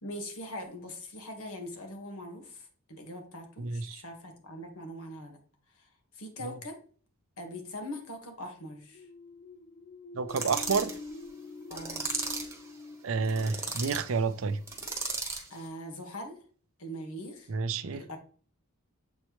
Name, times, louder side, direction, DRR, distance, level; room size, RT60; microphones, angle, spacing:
voice 1, 0.0-5.4 5.7-5.9 6.1-6.8 7.4-9.1 11.7-12.1 15.5-16.4 16.8-17.5 17.9-18.2, equal, 75° left, 1.5 m, -42 dB
voice 2, 3.6-4.0 10.1-10.9 13.0-14.6 17.5-18.0, right 4 dB, 65° right, 0.5 m, -30 dB
sound 1, 8.8-14.4, left 3 dB, 40° left, 0.3 m, -46 dB
sound 2, 10.3-11.0 11.7-12.6 13.2-14.0 14.7-15.5, right 4 dB, 15° right, 1.1 m, -35 dB
7.5 x 4.4 x 3.0 m
head